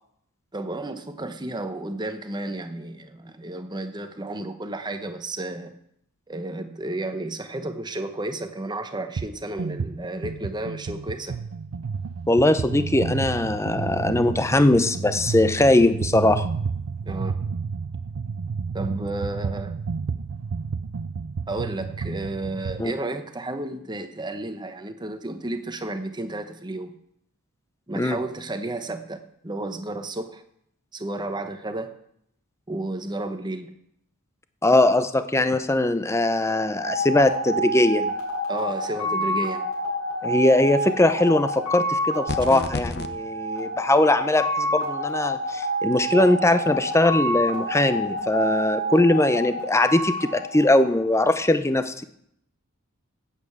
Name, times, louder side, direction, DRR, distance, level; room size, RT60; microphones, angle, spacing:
voice 1, 0.5-5.7 6.3-11.4 17.0-17.4 18.7-19.7 21.5-26.9 27.9-30.4 30.9-31.9 32.7-33.7 38.5-39.7, right 2 dB, 20° right, 8 dB, 1.0 m, -32 dB
sound 1, 9.2-9.3 9.6-22.9, right 5 dB, 65° right, 0.5 m, -31 dB
voice 2, 12.3-16.4 22.8-22.9 27.9-28.2 34.6-38.1 40.2-51.9, left 1 dB, 15° left, 10 dB, 0.6 m, -21 dB
sound 2, 36.8-51.2, equal, 75° left, 5.0 m, -28 dB
sound 3, 42.3-43.1, left 3 dB, 50° left, 0.8 m, -29 dB
8.8 x 8.5 x 8.1 m, 0.73 s
head